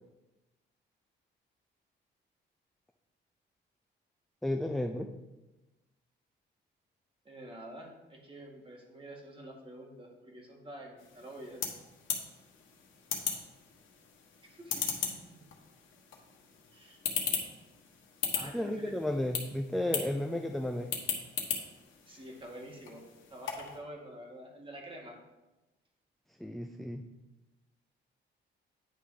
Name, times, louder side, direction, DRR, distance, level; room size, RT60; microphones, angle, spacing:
voice 1, 4.4-5.1 18.5-20.9 26.4-27.0, left 1 dB, ahead, 4 dB, 0.4 m, -33 dB
voice 2, 7.2-11.6 14.4-15.4 16.7-17.0 18.3-19.1 22.1-23.0 23.3-25.2, right 1 dB, 25° right, 0 dB, 1.9 m, -48 dB
sound 1, 11.0-23.8, left 7 dB, 75° left, 1.3 m, -39 dB
9.8 x 3.3 x 4.8 m, 1.1 s
cardioid pair, 90°, 20 cm